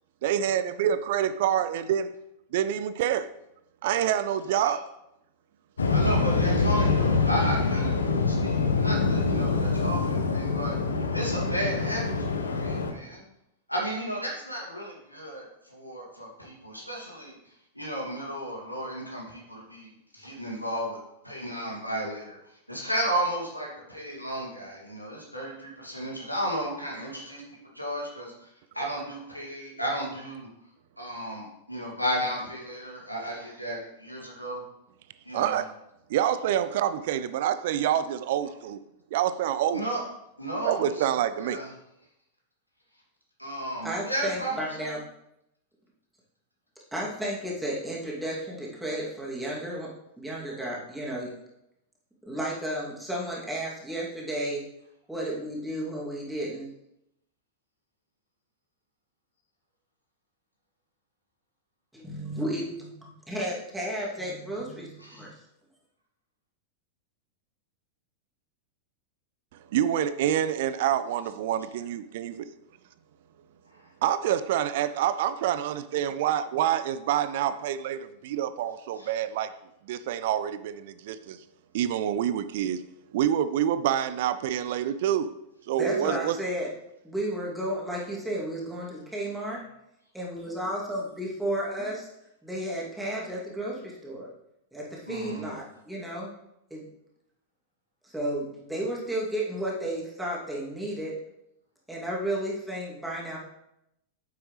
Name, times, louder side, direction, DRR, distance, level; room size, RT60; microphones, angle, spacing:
voice 1, 0.2-2.1 2.5-3.3 3.8-4.8 35.3-35.7 36.1-38.8 39.1-39.8 40.6-41.6 69.7-72.5 74.0-79.5 79.9-81.4 81.7-82.8 83.1-85.3 85.7-86.4, right 10 dB, 55° right, 13 dB, 0.4 m, -27 dB
Waves surf, 5.8-12.9, left 4 dB, 70° left, 0.9 m, -25 dB
voice 2, 5.9-10.8 11.1-13.2 13.7-17.3 17.7-21.0 21.2-22.4 22.7-28.5 28.7-30.5 31.0-34.6 35.2-35.6 39.7-40.0 40.4-41.1 41.4-41.7 43.4-44.5 44.8-44.9 65.0-65.3 79.0-79.1 95.1-95.5, right 1 dB, 90° left, -3 dB, 2.5 m, -33 dB
voice 3, 43.8-45.0 46.9-49.9 50.2-51.3 52.3-54.6 55.1-56.7 61.9-65.3 85.8-86.7 87.0-89.6 90.1-92.0 92.4-94.3 94.7-96.3 96.7-96.8 98.0-101.2 101.9-103.4, right 1 dB, 5° right, -4 dB, 2.6 m, -33 dB
9.5 x 7.7 x 3.3 m, 0.82 s
figure-of-eight pair, 90°, 0 cm